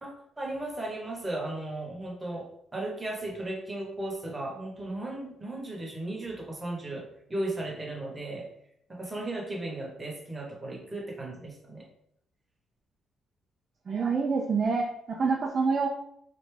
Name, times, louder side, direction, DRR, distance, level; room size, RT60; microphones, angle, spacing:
voice 1, 0.0-2.5 2.7-7.0 7.3-8.5 8.9-11.9, right 2 dB, 20° right, -1 dB, 1.2 m, -36 dB
voice 2, 13.9-15.9, right 4 dB, 45° right, 0 dB, 0.5 m, -27 dB
3.3 x 2.6 x 3.3 m, 0.72 s
cardioid pair, 90°, 0 cm